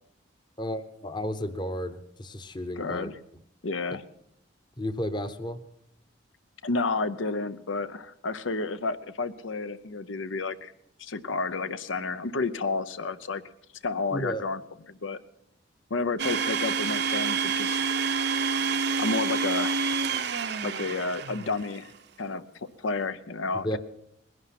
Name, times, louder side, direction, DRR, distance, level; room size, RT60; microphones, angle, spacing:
voice 1, 0.6-3.1 4.8-5.6 14.1-14.4 23.6-23.8, equal, 25° left, 10 dB, 0.8 m, -32 dB
voice 2, 2.8-3.2 3.6-4.0 6.6-10.7 11.0-13.4 13.8-14.6 14.9-15.2 15.9-17.9 19.0-19.8 20.6-21.9 22.2-22.5 22.8-23.8, left 3 dB, 85° left, 12 dB, 0.7 m, -31 dB
Domestic sounds home sounds, 16.2-21.7, right 5 dB, 55° right, 0.7 m, -28 dB
20.0 x 11.0 x 5.9 m, 0.75 s
head